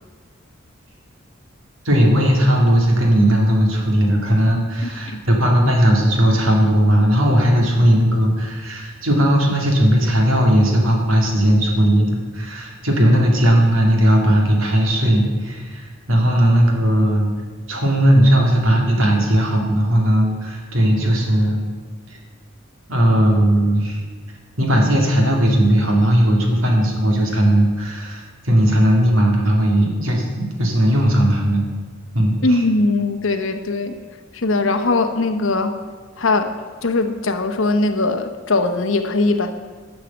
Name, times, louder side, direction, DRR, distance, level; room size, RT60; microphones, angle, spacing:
voice 1, 1.8-17.3 17.7-21.6 22.1-22.2 22.9-24.0 24.6-31.6 32.1-32.6, equal, 90° right, 0 dB, 2.4 m, -17 dB
voice 2, 4.8-5.2 32.4-34.0 34.3-35.7 36.2-36.5 36.8-39.5, left 2 dB, 75° left, 6 dB, 1.0 m, -20 dB
11.5 x 6.6 x 7.2 m, 1.4 s
head